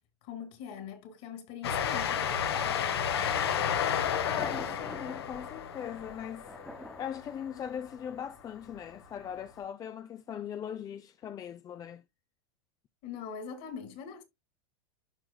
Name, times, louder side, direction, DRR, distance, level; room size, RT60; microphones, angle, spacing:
voice 1, 0.2-3.3 13.0-14.2, left 7 dB, 55° left, 2.5 m, -43 dB
Train, 1.6-7.8, left 8 dB, 80° left, 1.5 m, -32 dB
voice 2, 4.2-6.5 7.0-12.0, left 9 dB, 30° left, 0.5 m, -40 dB
Thunder, 4.2-9.5, equal, ahead, 1.2 m, -49 dB
11.5 x 4.7 x 2.2 m
hypercardioid pair, 110°, 13 cm